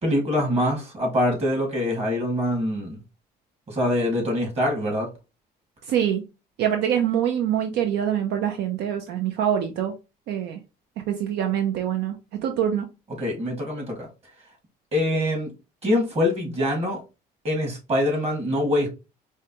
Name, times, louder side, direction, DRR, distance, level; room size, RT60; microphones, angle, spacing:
voice 1, 0.0-3.0 3.7-5.1 13.2-14.1 14.9-15.5 15.8-17.0 17.4-18.9, left 1 dB, 35° right, 1.9 m, -24 dB
voice 2, 5.9-6.2 6.6-9.9 10.3-10.6 11.1-12.2 12.4-12.9, right 9 dB, 80° right, 0.5 m, -24 dB
4.8 x 2.2 x 2.9 m
cardioid pair, 110°, 17 cm